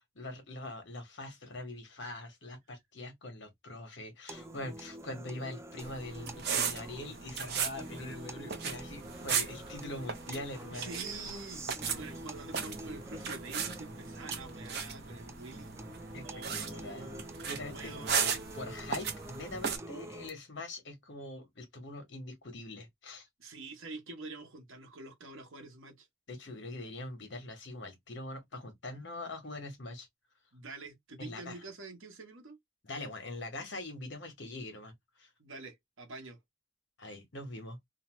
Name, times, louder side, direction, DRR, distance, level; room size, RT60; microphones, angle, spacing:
voice 1, 0.0-10.9 11.2-11.3 16.1-17.1 17.5-23.3 26.3-30.1 31.2-31.6 32.8-34.9 35.2-35.3 37.0-37.8, left 2 dB, 60° left, 1.1 m, -43 dB
sound 1, 4.3-20.3, right 1 dB, 15° right, 0.3 m, -47 dB
sound 2, 5.8-19.8, right 6 dB, 55° right, 0.6 m, -37 dB
voice 2, 7.9-8.6 10.7-15.7 16.2-17.3 17.7-18.2 23.4-26.1 30.5-32.6 35.4-36.4, right 3 dB, 80° right, 1.0 m, -46 dB
2.8 x 2.1 x 3.0 m
head